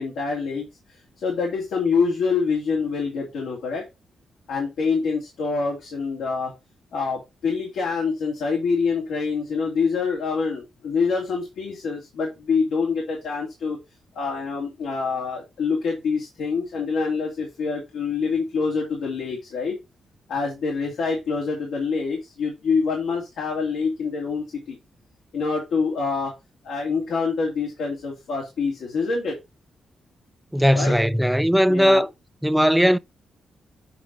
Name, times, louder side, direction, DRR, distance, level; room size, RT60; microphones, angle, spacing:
voice 1, 0.0-3.8 4.5-6.5 6.9-13.8 14.1-19.8 20.3-24.8 25.3-26.3 26.6-29.4 30.7-30.9 31.7-32.0, left 5 dB, 85° left, 2.5 m, -26 dB
voice 2, 30.5-32.1 32.4-33.0, equal, 5° right, 0.5 m, -18 dB
8.1 x 4.7 x 4.0 m
cardioid pair, 85°, 0 cm